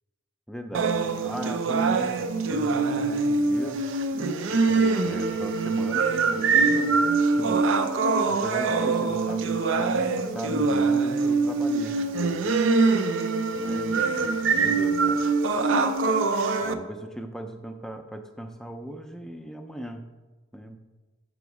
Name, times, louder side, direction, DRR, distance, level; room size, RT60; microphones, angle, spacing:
voice 1, 0.5-3.8 4.5-7.7 8.3-12.8 13.5-15.3 16.6-20.1 20.5-20.8, equal, 5° left, 6 dB, 0.3 m, -39 dB
sound 1, 0.7-16.7, right 4 dB, 90° right, 0.5 m, -24 dB
6.1 x 5.0 x 4.7 m, 1.2 s
head